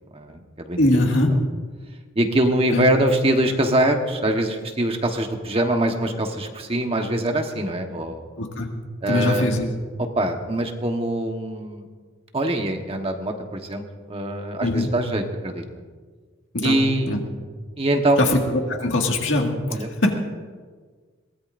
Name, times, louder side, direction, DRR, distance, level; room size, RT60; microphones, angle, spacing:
voice 1, 0.1-0.8 2.1-8.3 9.0-9.4 10.0-11.9 12.3-15.6 16.6-17.2 17.8-18.3 19.7-20.1, right 1 dB, 30° right, 4 dB, 1.2 m, -23 dB
voice 2, 0.8-1.3 2.7-2.8 8.4-8.7 9.1-9.7 14.6-14.9 16.5-16.8 17.1-17.2 18.2-18.4 18.7-20.1, left 1 dB, 80° left, 2 dB, 1.9 m, -21 dB
22.0 x 17.0 x 2.6 m, 1.5 s
head